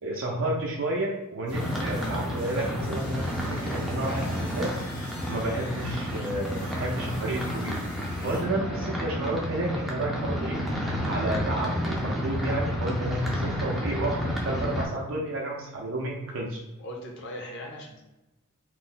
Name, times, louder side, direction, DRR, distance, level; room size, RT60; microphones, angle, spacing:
voice 1, 0.0-4.8 5.3-7.8 8.2-10.6 11.0-16.6, right 1 dB, 60° right, -3 dB, 0.5 m, -31 dB
sound 1, 1.5-8.4, left 1 dB, 75° left, 1.0 m, -43 dB
sound 2, 1.5-14.9, equal, ahead, 0.4 m, -31 dB
voice 2, 16.8-18.1, equal, 55° left, 0 dB, 0.6 m, -39 dB
2.4 x 2.0 x 3.6 m, 0.99 s
head